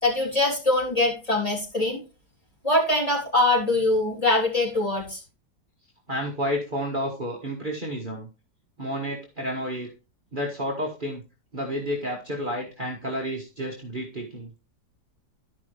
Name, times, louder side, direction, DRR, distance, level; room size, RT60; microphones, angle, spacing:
voice 1, 0.0-2.0 2.6-5.2, left 2 dB, 20° left, -3 dB, 3.4 m, -23 dB
voice 2, 6.1-8.3 8.8-9.9 10.3-11.2 11.5-14.5, equal, 30° right, -2 dB, 1.6 m, -30 dB
12.5 x 5.3 x 3.3 m, 0.30 s
omnidirectional pair, 1.8 m